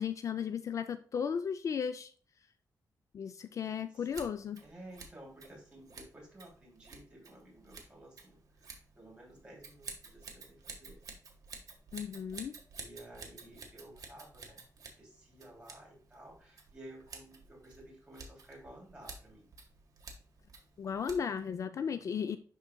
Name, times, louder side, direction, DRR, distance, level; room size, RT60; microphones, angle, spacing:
voice 1, 0.0-2.1 3.1-4.6 11.9-12.5 20.8-22.4, left 7 dB, 50° left, 10 dB, 0.4 m, -35 dB
Scissors, 4.0-21.5, right 4 dB, 55° right, 1.4 m, -52 dB
voice 2, 4.6-11.0 12.4-14.7 15.0-19.5 21.7-22.4, right 1 dB, 15° right, -3 dB, 2.7 m, -54 dB
11.5 x 3.9 x 2.2 m, 0.43 s
wide cardioid pair, 165°, 7 cm